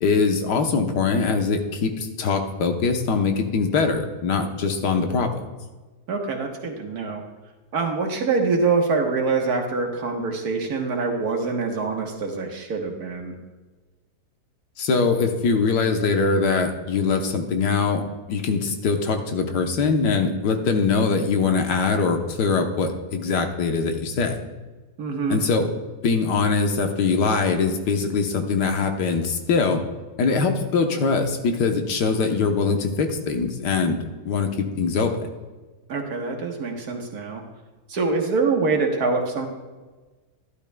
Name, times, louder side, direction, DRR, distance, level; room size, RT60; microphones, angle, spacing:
voice 1, 0.0-5.4 14.8-18.0 18.3-24.4 25.3-25.7 26.0-29.8 30.2-35.3, left 4 dB, 80° left, 5 dB, 1.6 m, -22 dB
voice 2, 6.1-7.2 7.7-13.4 25.0-25.4 35.9-37.4 37.9-39.5, right 4 dB, 65° right, 2 dB, 1.7 m, -25 dB
12.0 x 12.0 x 2.2 m, 1.3 s
omnidirectional pair, 1.8 m